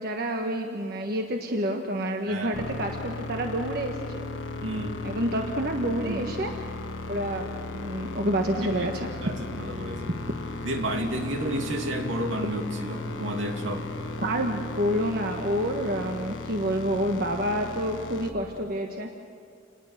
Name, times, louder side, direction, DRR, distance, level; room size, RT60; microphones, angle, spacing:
voice 1, 0.0-4.2 5.0-6.5 7.1-9.1 14.2-19.2, equal, 50° right, 3 dB, 1.3 m, -28 dB
voice 2, 2.3-2.6 4.6-5.0 6.0-6.2 8.6-8.9 9.2-10.1 10.6-14.0, right 1 dB, 75° right, 3 dB, 2.7 m, -31 dB
sound 1, 2.5-18.3, left 3 dB, 70° left, 1.3 m, -36 dB
28.5 x 20.5 x 6.6 m, 2.3 s
head